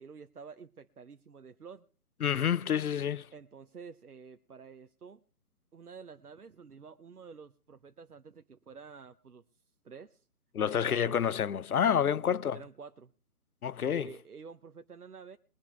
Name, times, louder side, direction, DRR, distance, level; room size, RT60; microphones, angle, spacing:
voice 1, 0.0-1.9 3.3-5.2 5.7-9.4 9.8-10.3 10.6-11.2 12.2-13.1 13.8-15.4, right 5 dB, 85° right, 0.9 m, -49 dB
voice 2, 2.2-3.3 10.5-12.6 13.6-14.1, left 8 dB, 75° left, 0.6 m, -28 dB
21.5 x 10.0 x 3.4 m
figure-of-eight pair, 145°, 44 cm